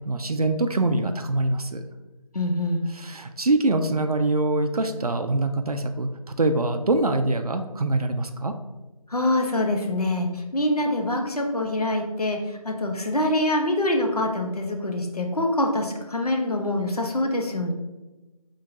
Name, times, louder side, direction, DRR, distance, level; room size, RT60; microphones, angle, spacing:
voice 1, 0.1-1.8 2.9-8.5, right 2 dB, 75° right, 7 dB, 0.5 m, -24 dB
voice 2, 2.3-2.8 9.1-17.7, left 1 dB, 75° left, 2 dB, 0.8 m, -25 dB
5.0 x 3.7 x 2.7 m, 1.1 s
figure-of-eight pair, 170°, 19 cm